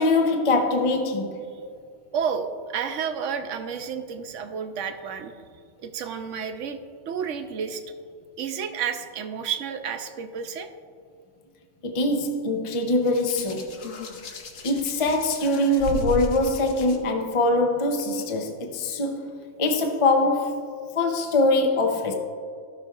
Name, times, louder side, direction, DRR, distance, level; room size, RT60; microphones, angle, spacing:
voice 1, 0.0-1.4 11.8-13.7 14.6-19.3 19.6-20.7 21.0-22.2, left 2 dB, 35° left, 0.6 m, -23 dB
voice 2, 2.1-5.3 5.8-6.8 7.1-7.8 8.4-10.7, right 7 dB, 80° right, 1.0 m, -31 dB
Hands, 13.0-17.0 18.0-18.2, left 2 dB, 85° left, 1.2 m, -35 dB
15.5 x 6.0 x 2.4 m
omnidirectional pair, 1.3 m